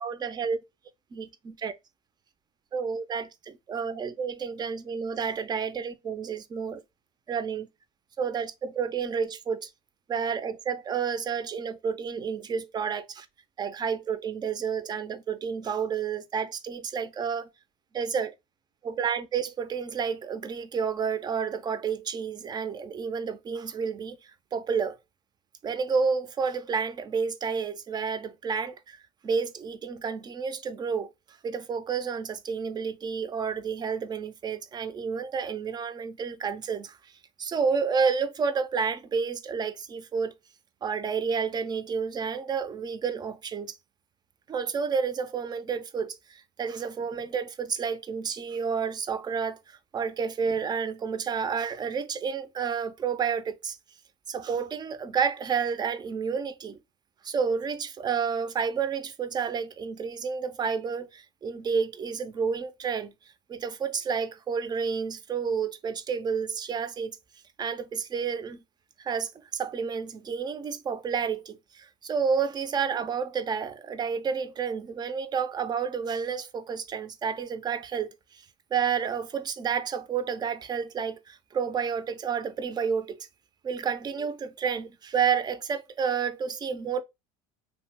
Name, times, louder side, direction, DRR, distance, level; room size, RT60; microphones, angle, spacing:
voice 1, 0.0-0.6 1.1-1.7 2.7-6.8 7.3-7.7 8.2-9.7 10.1-13.3 13.6-17.5 17.9-18.3 18.9-24.2 24.5-25.0 25.6-29.0 29.2-31.1 31.4-37.0 37.4-40.3 40.8-43.8 44.5-53.8 54.3-56.8 57.2-63.1 63.5-67.2 67.6-68.6 69.0-78.4 78.7-83.3 83.6-87.0, right 6 dB, 25° right, 0.3 m, -30 dB
2.6 x 2.1 x 3.2 m
supercardioid pair, 115°, 18 cm